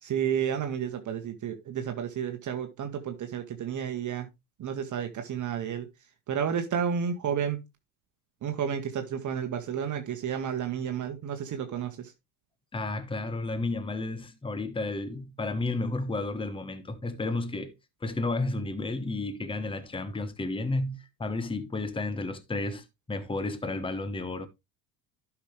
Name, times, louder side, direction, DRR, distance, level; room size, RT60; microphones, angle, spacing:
voice 1, 0.0-4.3 4.6-5.9 6.3-7.6 8.4-12.1, right 8 dB, 40° right, 1.4 m, -31 dB
voice 2, 12.7-17.7 18.0-24.5, left 2 dB, 10° left, 1.2 m, -32 dB
11.5 x 6.0 x 3.2 m
hypercardioid pair, 85°, 48 cm